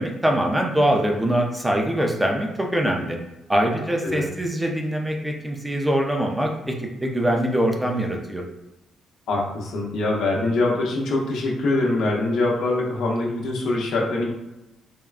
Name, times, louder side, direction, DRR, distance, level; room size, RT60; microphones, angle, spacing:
voice 1, 0.0-3.2 3.5-6.8 7.0-8.4, right 1 dB, 10° right, 1 dB, 0.5 m, -23 dB
voice 2, 9.3-14.3, left 2 dB, 80° left, -2 dB, 0.7 m, -23 dB
3.5 x 2.1 x 2.3 m, 0.96 s
cardioid pair, 90°, 0 cm